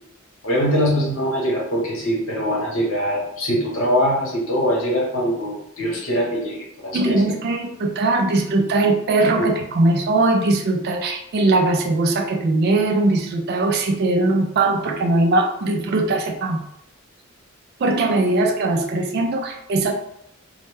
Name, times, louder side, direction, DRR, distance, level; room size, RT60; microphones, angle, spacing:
voice 1, 0.4-7.3 9.4-9.5, equal, 75° left, -4 dB, 0.9 m, -22 dB
voice 2, 6.9-16.6 17.8-19.9, right 2 dB, 50° right, 4 dB, 0.3 m, -20 dB
2.1 x 2.1 x 3.1 m, 0.76 s
head